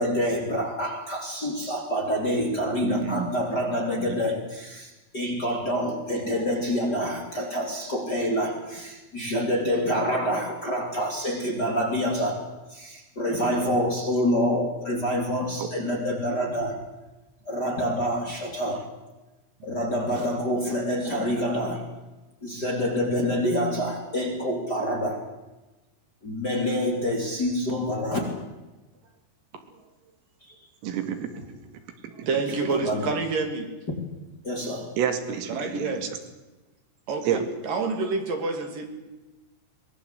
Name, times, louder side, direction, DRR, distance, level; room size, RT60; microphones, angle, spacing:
voice 1, 0.0-12.4 12.7-16.8 17.4-18.9 19.6-21.8 22.4-25.2 26.2-28.4 30.4-30.5 32.6-33.1 33.9-34.0 34.4-34.9, equal, 25° left, 3.1 m, -27 dB
voice 2, 2.8-3.3 4.1-4.2 13.3-13.8 15.6-15.7 20.2-20.3 30.8-31.5 32.0-32.3 35.0-36.1 37.2-37.4, right 8 dB, 80° right, 4.9 m, -30 dB
voice 3, 32.3-33.7 35.5-36.0 37.1-38.9, right 4 dB, 45° right, 4.1 m, -28 dB
24.0 x 20.0 x 8.3 m
omnidirectional pair, 5.9 m